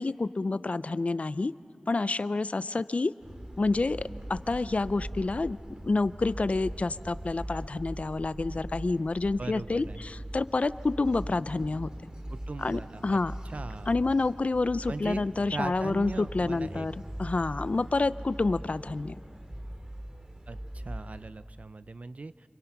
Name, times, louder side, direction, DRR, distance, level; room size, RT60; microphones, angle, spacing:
voice 1, 0.0-1.5 1.9-3.1 3.6-5.6 5.8-11.9 12.6-13.4 13.9-19.2, left 3 dB, 55° left, 16 dB, 0.5 m, -28 dB
sound 1, 3.2-21.3, right 1 dB, 30° right, 2.3 m, -41 dB
voice 2, 9.4-10.0 12.3-13.2 13.5-13.9 14.9-15.2 15.5-16.9 20.5-22.5, right 3 dB, 60° right, 14 dB, 0.6 m, -39 dB
28.5 x 25.5 x 6.0 m, 2.5 s
wide cardioid pair, 55°, 3 cm